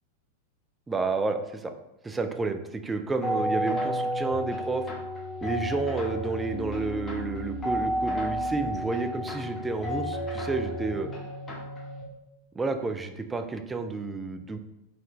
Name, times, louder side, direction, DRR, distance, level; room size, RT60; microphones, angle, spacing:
voice 1, 0.9-1.7 2.0-4.9 5.4-11.1 12.5-14.6, right 3 dB, 10° right, 7 dB, 0.4 m, -30 dB
sound 1, 3.2-12.0, equal, 20° left, 1.1 m, -31 dB
4.2 x 3.8 x 3.2 m, 0.90 s
figure-of-eight pair, 90°, 0 cm